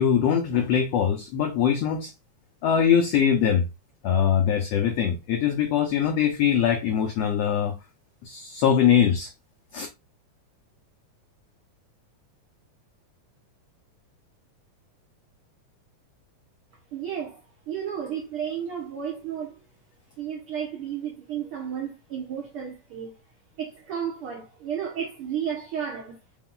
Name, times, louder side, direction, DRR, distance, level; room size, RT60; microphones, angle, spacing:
voice 1, 0.0-2.1 2.6-3.6 4.0-7.7 8.2-9.3 9.7-9.9, left 8 dB, 85° left, 1.4 m, -22 dB
voice 2, 16.9-19.6 20.2-23.2 23.6-26.2, right 8 dB, 70° right, 1.3 m, -33 dB
5.4 x 2.3 x 3.7 m
omnidirectional pair, 3.7 m